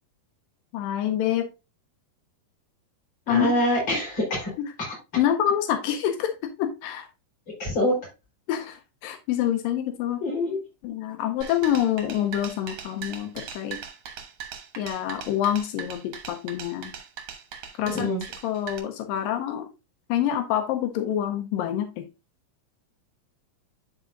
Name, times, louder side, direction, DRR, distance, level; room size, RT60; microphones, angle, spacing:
voice 1, 0.7-1.5 3.3-3.6 4.6-4.7 5.2-7.1 8.5-10.2 10.8-13.8 14.8-16.9 17.8-18.1 18.4-19.7 20.1-22.0, left 11 dB, 90° left, 6 dB, 2.5 m, -26 dB
voice 2, 3.3-4.5 4.8-4.9 7.6-7.9 10.2-10.6 17.9-18.2, left 1 dB, 35° left, -3 dB, 4.2 m, -25 dB
sound 1, 11.4-18.8, right 7 dB, 60° right, 1.7 m, -39 dB
11.0 x 4.5 x 2.5 m, 0.26 s
omnidirectional pair, 3.9 m